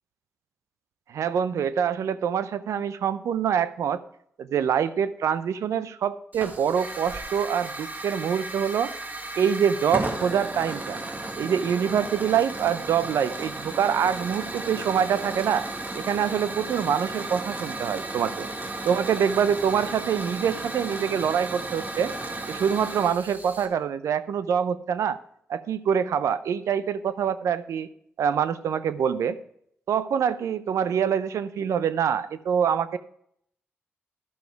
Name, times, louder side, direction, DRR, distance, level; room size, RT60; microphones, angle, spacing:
voice 1, 1.1-4.0 4.4-8.9 9.4-11.0 11.4-15.7 15.9-18.5 18.9-22.1 22.5-25.2 25.5-27.9 28.2-29.4 29.9-33.0, right 8 dB, 80° right, 14 dB, 0.5 m, -25 dB
Hiss / Fire, 6.3-23.7, right 2 dB, 35° right, 1.7 m, -34 dB
11.5 x 6.9 x 4.6 m, 0.70 s
supercardioid pair, 50°, 5 cm